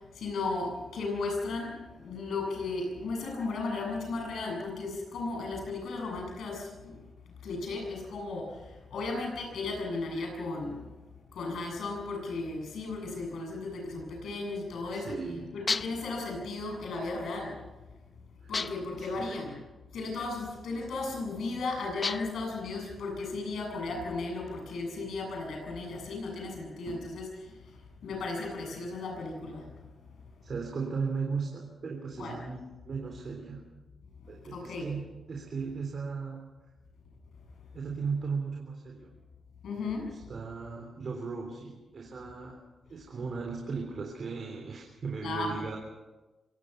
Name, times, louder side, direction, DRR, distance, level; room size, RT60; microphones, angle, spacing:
voice 1, 0.1-7.0 7.4-8.6 8.9-10.9 11.3-15.3 15.5-17.6 18.5-19.6 19.9-27.5 28.0-29.8 32.2-32.4 34.5-34.9 39.6-40.1 45.2-45.7, left 3 dB, 80° left, 2 dB, 7.6 m, -35 dB
voice 2, 14.9-15.5 19.0-19.3 30.4-33.6 34.3-35.0 35.3-36.4 37.7-39.1 39.8-42.6 42.9-45.8, right 5 dB, 55° right, 1 dB, 3.6 m, -36 dB
sound 1, 15.7-16.1 18.5-19.0 22.0-22.5, left 4 dB, 35° left, 0.6 m, -33 dB
25.0 x 18.0 x 5.8 m, 1.1 s
cardioid pair, 95°, 0 cm